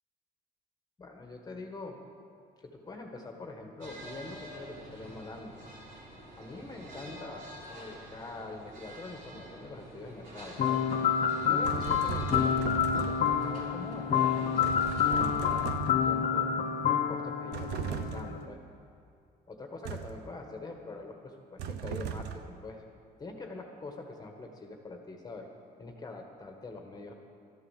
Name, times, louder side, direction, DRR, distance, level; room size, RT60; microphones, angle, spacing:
voice 1, 1.0-2.0 2.6-5.8 6.4-11.0 11.4-14.7 15.0-16.5 16.8-18.6 19.5-22.8 23.2-25.5 25.8-27.1, left 2 dB, 25° left, 3 dB, 1.5 m, -44 dB
sound 1, 3.8-15.7, right 1 dB, 55° right, 4.1 m, -48 dB
sound 2, 10.6-18.5, left 8 dB, 45° left, 0.8 m, -28 dB
sound 3, 11.6-13.4 14.6-16.2 17.5-18.4 19.9-20.3 21.6-22.6, right 8 dB, 85° right, 0.8 m, -37 dB
12.5 x 11.0 x 7.4 m, 2.5 s
cardioid pair, 110°, 17 cm